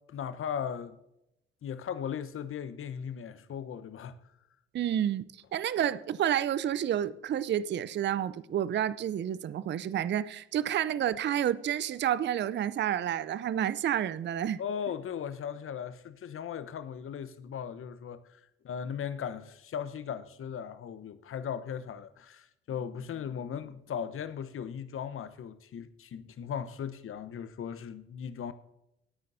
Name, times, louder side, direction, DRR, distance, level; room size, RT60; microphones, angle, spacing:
voice 1, 0.1-1.0 1.6-4.2 14.6-18.4 18.6-28.5, left 8 dB, 45° left, 1.0 m, -37 dB
voice 2, 4.7-5.2 5.5-14.6, right 10 dB, 35° right, 0.6 m, -29 dB
19.0 x 9.3 x 2.7 m
hypercardioid pair, 50°, 31 cm